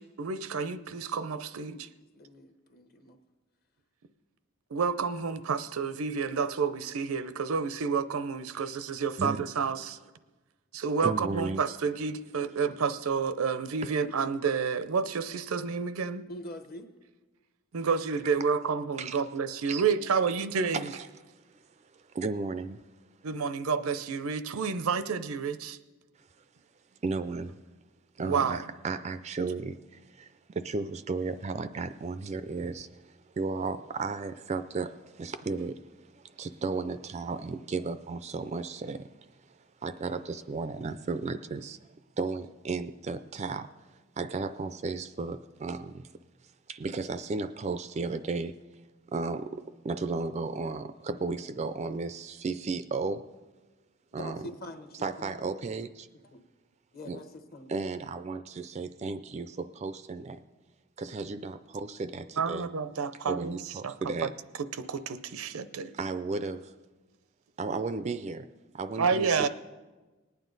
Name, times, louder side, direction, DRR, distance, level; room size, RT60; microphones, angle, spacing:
voice 1, 0.0-1.8 4.7-10.0 10.7-16.3 17.7-20.8 23.2-25.8 28.2-28.6 62.4-63.6 63.8-63.9 64.8-65.9 69.0-69.5, right 5 dB, 85° right, 0.6 m, -29 dB
voice 2, 1.5-1.9 2.1-3.2 16.3-16.9 54.1-55.3 56.3-56.4 56.9-57.2 57.5-57.7, left 1 dB, 45° left, 1.0 m, -44 dB
voice 3, 11.0-11.6 13.8-13.9 17.8-17.9 19.0-19.2 19.6-19.8 20.7-22.8 26.2-26.3 27.0-27.6 28.2-39.1 39.4-46.1 46.7-48.5 49.1-53.2 54.1-54.5 55.0-56.1 57.1-57.2 57.7-60.4 61.0-62.7 63.2-64.3 65.9-66.7 67.6-68.5 68.7-69.5, right 4 dB, 30° right, 0.3 m, -34 dB
19.5 x 9.2 x 3.9 m
head